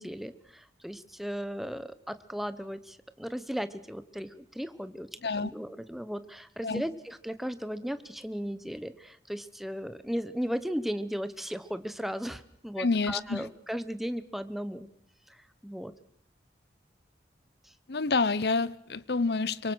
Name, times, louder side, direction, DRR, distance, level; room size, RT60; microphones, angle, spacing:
voice 1, 0.0-14.9 15.3-15.9 17.6-17.7, equal, ahead, 0.9 m, -36 dB
voice 2, 12.8-13.5 17.9-19.7, left 4 dB, 65° left, 0.8 m, -28 dB
24.5 x 23.5 x 6.3 m
head